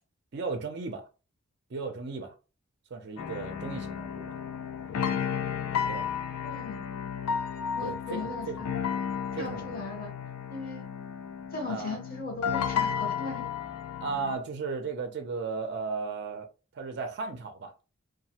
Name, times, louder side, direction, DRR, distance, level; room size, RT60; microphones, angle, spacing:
voice 1, 0.3-1.1 1.7-2.3 2.9-4.3 5.9-6.1 7.8-8.6 9.3-9.8 11.7-12.0 14.0-16.5 16.7-17.7, right 4 dB, 50° right, 0.4 m, -35 dB
sound 1, 3.2-14.4, left 7 dB, 80° left, 0.3 m, -33 dB
voice 2, 6.4-6.8 7.8-8.7 9.3-10.1 10.5-10.9 11.5-13.5, left 3 dB, 40° left, 0.7 m, -38 dB
2.2 x 2.0 x 2.8 m
head